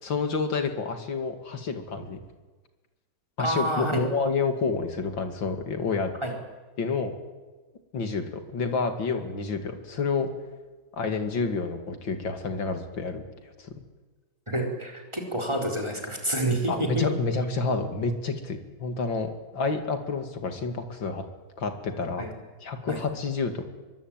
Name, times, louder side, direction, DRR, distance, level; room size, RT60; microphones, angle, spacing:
voice 1, 0.0-2.2 3.4-6.1 6.8-7.1 7.9-10.3 10.9-13.7 16.7-21.2 21.6-22.3 22.6-23.6, left 4 dB, 70° left, 6 dB, 3.1 m, -29 dB
voice 2, 3.4-4.0 6.2-6.3 14.5-17.1 22.2-22.3 22.9-23.0, right 1 dB, 15° right, 2 dB, 4.3 m, -28 dB
24.0 x 23.0 x 9.1 m, 1.3 s
omnidirectional pair, 2.2 m